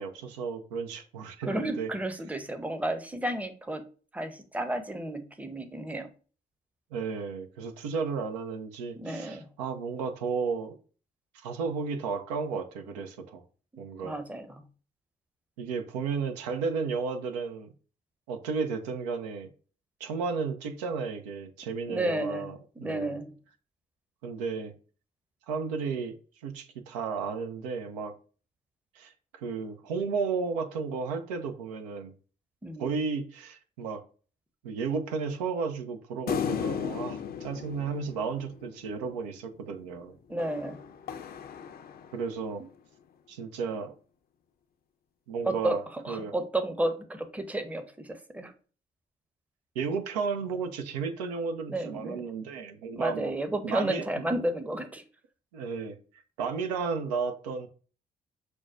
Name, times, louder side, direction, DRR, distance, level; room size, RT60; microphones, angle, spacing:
voice 1, 0.0-1.9 6.9-10.7 11.3-13.4 13.8-14.2 15.6-17.7 18.3-19.5 20.0-23.2 24.2-24.7 25.5-26.2 26.4-28.1 29.0-32.1 32.8-34.0 34.6-40.2 42.1-42.6 43.3-43.9 45.3-46.3 49.8-53.3 53.6-54.3 55.5-56.0 56.4-57.7, right 5 dB, 85° right, 0.5 m, -33 dB
voice 2, 1.5-3.8 4.1-6.1 9.0-9.5 14.0-14.6 21.9-22.5 22.8-23.3 32.6-33.0 40.3-40.9 45.4-48.5 51.7-52.2 52.9-55.0, right 1 dB, 5° right, 0.6 m, -32 dB
sound 1, 36.3-38.9 40.4-42.5, left 7 dB, 50° left, 0.5 m, -35 dB
6.1 x 2.1 x 2.5 m
hypercardioid pair, 45°, 21 cm